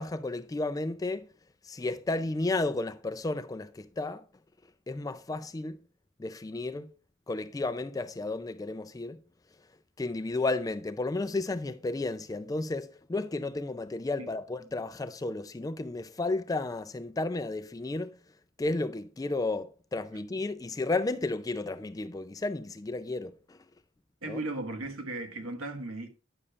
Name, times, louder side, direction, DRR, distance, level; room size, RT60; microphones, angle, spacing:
voice 1, 0.0-1.3 1.6-4.3 4.9-5.8 6.2-6.9 7.3-9.2 10.0-18.2 18.6-23.6 24.3-24.4, left 2 dB, 15° left, 0.3 m, -33 dB
voice 2, 24.2-26.1, right 2 dB, 85° right, 1.4 m, -36 dB
9.8 x 6.9 x 2.4 m
head